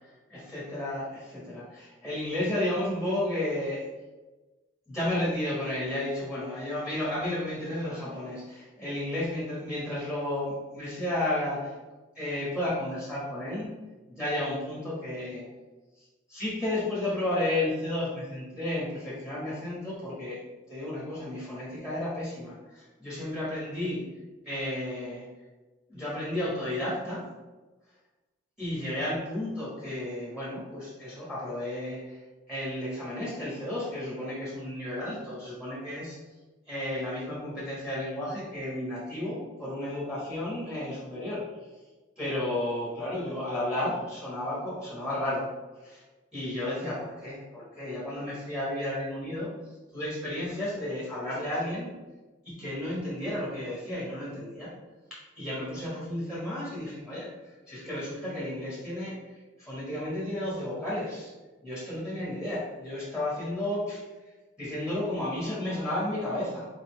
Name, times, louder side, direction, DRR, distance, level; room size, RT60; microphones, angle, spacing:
voice 1, 0.3-3.8 4.9-11.7 12.1-13.7 14.1-15.4 16.3-20.4 20.7-24.0 24.4-25.2 25.9-27.2 28.6-32.2 32.5-36.2 36.7-41.4 42.2-45.5 45.8-46.0 46.3-49.5 49.9-51.9 52.4-54.7 55.4-57.3 57.7-59.1 59.6-61.3 61.6-64.0 64.6-66.7, left 1 dB, 5° right, -8 dB, 1.4 m, -32 dB
4.1 x 4.1 x 3.2 m, 1.2 s
head